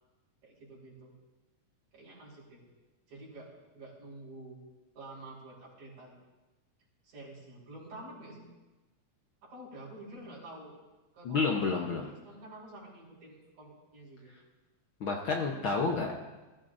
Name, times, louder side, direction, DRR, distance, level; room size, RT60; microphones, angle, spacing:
voice 1, 0.4-1.1 1.9-2.6 3.1-4.6 4.9-6.1 7.0-8.4 9.4-10.8 11.1-14.3, right 2 dB, 85° right, -5 dB, 6.0 m, -49 dB
voice 2, 11.2-12.1 15.0-16.2, left 4 dB, 65° left, 1 dB, 1.3 m, -30 dB
21.5 x 14.5 x 2.6 m, 1.2 s
omnidirectional pair, 3.4 m